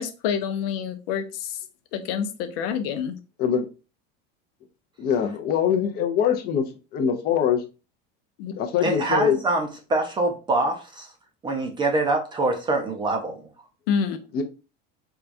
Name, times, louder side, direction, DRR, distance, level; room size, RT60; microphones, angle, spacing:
voice 1, 0.0-1.6 1.9-3.2 8.4-8.5 13.9-14.2, left 7 dB, 75° left, 8 dB, 0.7 m, -27 dB
voice 2, 5.0-6.6 6.9-7.6 8.6-9.4 14.3-14.4, left 8 dB, 35° left, 5 dB, 0.5 m, -23 dB
voice 3, 8.8-11.1 11.4-13.5, right 2 dB, 15° right, 3 dB, 0.5 m, -25 dB
4.6 x 2.3 x 2.5 m, 0.32 s
cardioid pair, 160°, 29 cm